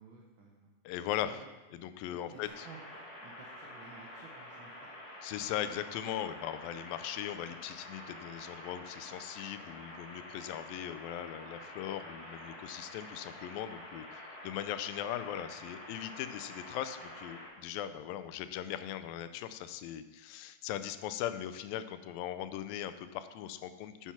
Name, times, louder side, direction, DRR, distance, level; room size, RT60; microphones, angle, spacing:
voice 1, 0.0-0.7 1.2-1.5 2.1-4.9, right 4 dB, 80° right, -2 dB, 1.1 m, -54 dB
voice 2, 0.9-1.4 1.7-2.7 5.2-24.1, left 11 dB, 90° left, 11 dB, 2.3 m, -39 dB
sound 1, 2.5-17.5, left 1 dB, 30° left, 2.4 m, -48 dB
10.0 x 5.9 x 5.9 m, 1.1 s
omnidirectional pair, 4.0 m